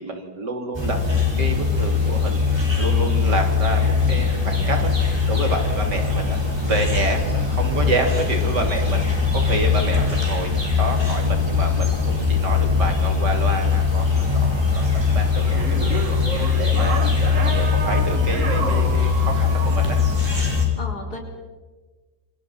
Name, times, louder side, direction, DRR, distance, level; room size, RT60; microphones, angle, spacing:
voice 1, 0.0-2.4 2.8-15.6 16.0-17.1 17.4-20.0, right 2 dB, 75° right, 4 dB, 3.8 m, -28 dB
sound 1, 0.7-20.7, left 5 dB, 15° right, 5.3 m, -21 dB
voice 2, 9.6-10.1 16.8-17.3 20.8-21.2, left 2 dB, 65° left, 2 dB, 4.8 m, -36 dB
sound 2, 14.8-20.6, right 4 dB, 45° right, 2.1 m, -31 dB
28.0 x 26.0 x 5.8 m, 1.3 s
omnidirectional pair, 1.8 m